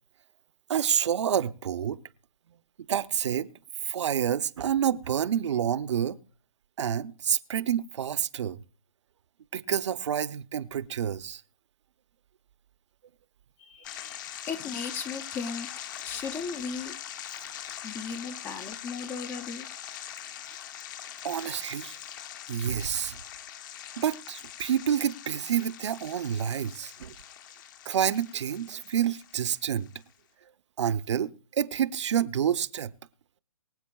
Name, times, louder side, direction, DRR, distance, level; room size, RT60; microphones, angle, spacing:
voice 1, 0.7-2.0 2.9-3.5 3.8-6.2 6.8-8.6 9.5-11.4 21.2-22.0 22.5-23.2 24.0-27.1 27.9-29.9 30.8-32.9, right 9 dB, 55° right, 0.7 m, -28 dB
voice 2, 13.6-14.2 14.5-15.7 16.0-16.9 17.8-19.7, left 5 dB, 10° left, 0.5 m, -36 dB
sound 1, 13.8-30.0, left 10 dB, 35° left, 0.9 m, -42 dB
24.0 x 8.2 x 2.3 m
hypercardioid pair, 150°, 18 cm